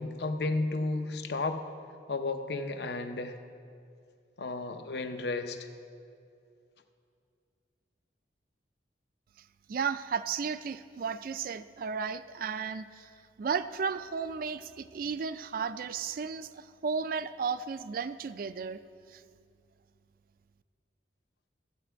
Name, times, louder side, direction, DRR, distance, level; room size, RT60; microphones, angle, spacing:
voice 1, 0.0-1.6 2.1-3.3 4.4-5.7, left 3 dB, 60° left, 7 dB, 0.7 m, -33 dB
voice 2, 9.7-13.1 13.4-18.8 19.1-19.2, right 6 dB, 50° right, 14 dB, 0.3 m, -34 dB
14.5 x 8.2 x 4.5 m, 2.4 s
head